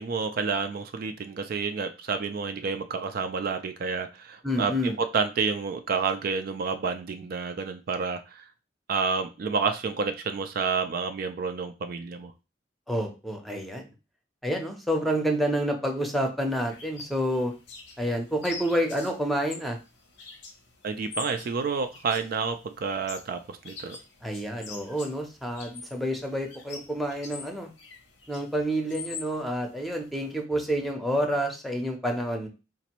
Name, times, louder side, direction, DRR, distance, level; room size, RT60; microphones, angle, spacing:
voice 1, 0.0-8.4 8.9-12.3 20.8-24.0, right 5 dB, 55° right, 7 dB, 0.4 m, -29 dB
voice 2, 4.4-5.0 12.9-13.9 14.4-17.5 18.0-19.8 24.2-27.7 28.3-32.5, equal, ahead, 3 dB, 0.7 m, -28 dB
sound 1, 16.7-30.4, left 5 dB, 85° left, 0.9 m, -45 dB
4.0 x 2.6 x 2.9 m, 0.29 s
head